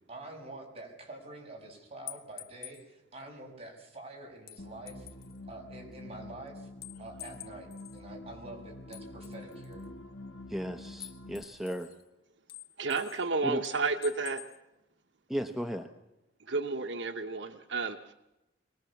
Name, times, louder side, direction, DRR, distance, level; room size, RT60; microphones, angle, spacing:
voice 1, 0.1-5.1 5.5-6.7 7.0-9.9, right 2 dB, 35° right, 1 dB, 6.5 m, -47 dB
sound 1, 2.1-2.8 4.5-5.4 6.8-8.0 8.9-9.9 11.0-12.0 12.5-13.3 13.6-14.6, left 14 dB, 55° left, 1.5 m, -47 dB
sound 2, 4.6-11.4, left 1 dB, 80° left, 1.7 m, -47 dB
voice 2, 10.5-11.9 13.4-13.6 15.3-15.9, equal, ahead, 5 dB, 1.0 m, -35 dB
voice 3, 12.8-14.4 16.5-18.1, right 4 dB, 70° right, 6 dB, 1.1 m, -31 dB
24.0 x 20.0 x 7.2 m, 0.93 s
head